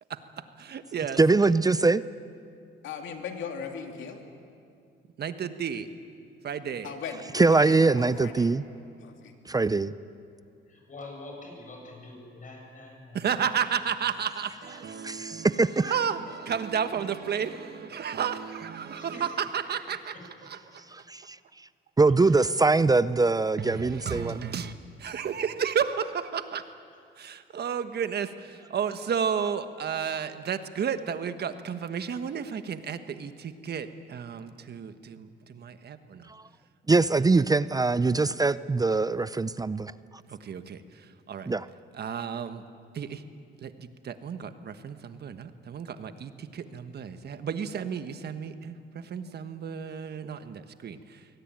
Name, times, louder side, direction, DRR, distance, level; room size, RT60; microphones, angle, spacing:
voice 1, 0.1-1.2 5.2-5.9 6.4-6.9 13.1-20.1 20.4-20.8 23.6-24.7 25.0-26.6 27.2-36.3 40.3-41.5 41.9-42.6 42.9-43.2 43.6-51.3, right 7 dB, 55° right, 10 dB, 1.4 m, -32 dB
voice 2, 1.2-2.0 7.3-8.6 9.5-10.0 15.0-15.9 20.9-21.4 22.0-24.5 36.3-36.4 36.9-39.9 41.5-41.7, right 3 dB, 20° right, 16 dB, 0.5 m, -23 dB
voice 3, 2.8-4.2 6.8-8.5 9.0-9.3, left 6 dB, 75° left, 3 dB, 2.8 m, -38 dB
voice 4, 10.7-13.5 15.0-15.1 18.9-19.3 19.6-19.7 20.1-20.2 22.1-22.2, left 2 dB, 40° left, 0 dB, 7.9 m, -45 dB
23.5 x 18.0 x 9.0 m, 2.4 s
cardioid pair, 90°, 20 cm